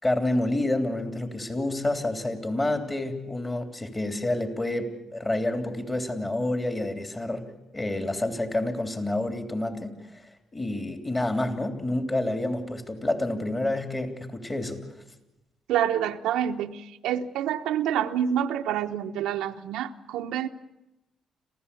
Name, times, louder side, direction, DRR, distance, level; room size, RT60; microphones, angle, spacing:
voice 1, 0.0-7.5 7.7-9.9 10.5-14.8, left 1 dB, 20° left, 6 dB, 3.2 m, -28 dB
voice 2, 15.7-20.5, right 10 dB, 90° right, 6 dB, 0.9 m, -27 dB
27.0 x 15.5 x 8.5 m, 0.96 s
cardioid pair, 90°, 0 cm